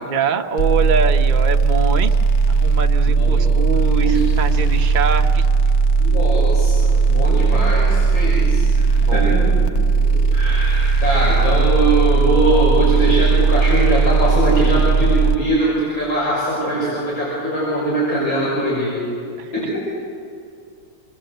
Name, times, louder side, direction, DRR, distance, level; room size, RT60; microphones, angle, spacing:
voice 1, 0.1-2.1 2.5-5.4 9.0-9.4 19.4-19.7, right 5 dB, 40° right, 4 dB, 0.7 m, -24 dB
sound 1, 0.6-15.3, right 4 dB, 45° left, 0.9 m, -16 dB
voice 2, 3.1-3.5 4.0-4.3 6.0-8.9 9.1-19.0 19.5-19.8, right 1 dB, 75° left, -7 dB, 6.9 m, -22 dB
27.0 x 22.0 x 7.9 m, 2.3 s
omnidirectional pair, 2.2 m